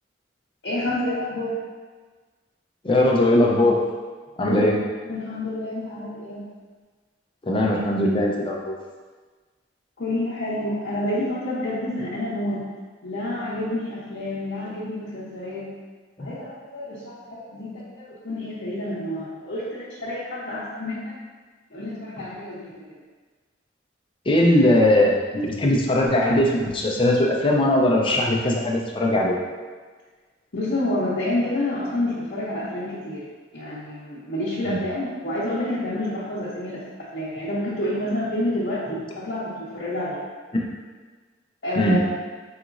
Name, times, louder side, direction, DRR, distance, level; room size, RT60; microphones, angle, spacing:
voice 1, 0.6-1.6 4.5-4.7 5.0-6.4 10.0-12.7 13.0-15.7 16.2-21.2 21.7-23.0 30.5-33.2 33.5-40.2 41.6-42.0, left 1 dB, 60° left, -11 dB, 0.8 m, -29 dB
voice 2, 2.8-3.8 4.4-4.8 7.4-8.7 16.2-16.3 24.3-29.4 34.6-34.8 41.8-42.0, left 1 dB, 30° left, -1 dB, 0.5 m, -20 dB
4.9 x 2.9 x 2.5 m, 1.4 s
head